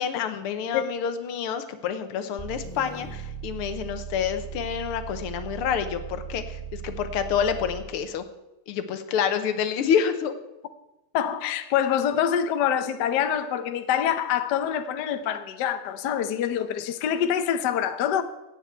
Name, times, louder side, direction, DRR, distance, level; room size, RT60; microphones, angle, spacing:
voice 1, 0.0-8.2 8.7-10.3, left 8 dB, 80° left, 1.8 m, -28 dB
sound 1, 2.4-8.0, right 7 dB, 10° left, 2.4 m, -38 dB
voice 2, 11.1-18.2, left 9 dB, 60° left, 1.2 m, -25 dB
15.0 x 9.2 x 4.4 m
omnidirectional pair, 2.4 m